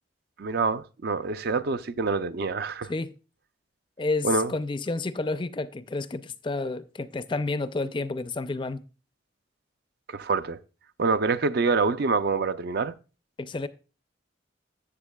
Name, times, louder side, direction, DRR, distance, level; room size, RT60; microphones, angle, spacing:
voice 1, 0.4-2.9 4.2-4.5 10.1-10.6 11.0-12.9, right 4 dB, 55° right, 0.5 m, -26 dB
voice 2, 4.0-8.8 13.4-13.7, left 3 dB, 25° left, 0.4 m, -30 dB
13.5 x 8.0 x 2.3 m
head